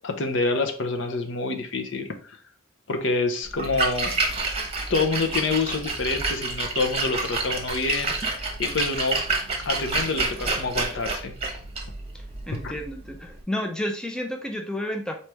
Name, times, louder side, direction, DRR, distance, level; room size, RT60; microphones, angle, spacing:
voice 1, 0.0-2.1 2.9-4.2 4.9-9.2 9.7-11.3 12.5-12.7, left 3 dB, 65° left, 6 dB, 0.7 m, -27 dB
Splash splatter, 3.5-13.4, right 3 dB, 30° right, 0.9 m, -29 dB
voice 2, 12.1-15.2, left 1 dB, 5° left, 3 dB, 0.4 m, -31 dB
4.2 x 3.2 x 3.4 m, 0.41 s
head